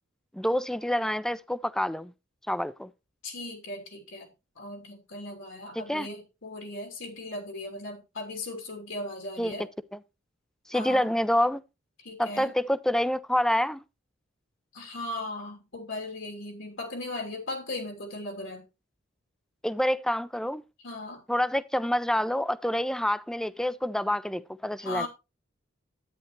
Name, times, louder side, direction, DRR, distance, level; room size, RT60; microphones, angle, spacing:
voice 1, 0.3-2.1 2.5-2.9 5.8-6.1 9.4-9.5 10.7-11.6 12.2-13.8 19.6-20.6 21.3-25.1, left 1 dB, 5° left, 0.4 m, -27 dB
voice 2, 3.2-4.3 4.6-9.7 10.7-11.1 12.0-12.5 14.7-18.6 20.8-21.2 24.8-25.1, left 2 dB, 85° left, 2.9 m, -37 dB
10.5 x 9.2 x 3.1 m
head